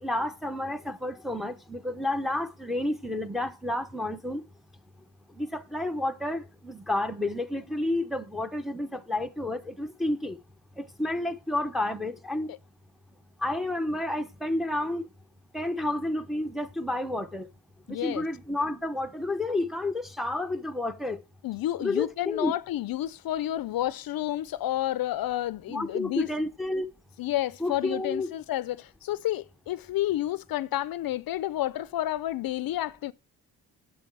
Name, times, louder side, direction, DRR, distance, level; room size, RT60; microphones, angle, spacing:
voice 1, 0.0-4.4 5.4-10.4 10.8-12.5 13.4-15.1 15.5-17.5 17.9-21.2 21.8-22.5 25.7-26.8 27.6-28.3, left 1 dB, ahead, 0.7 m, -30 dB
voice 2, 17.9-18.2 21.4-26.3 27.2-33.1, left 13 dB, 60° left, 0.5 m, -30 dB
7.7 x 7.6 x 4.6 m
cardioid pair, 90°, 39 cm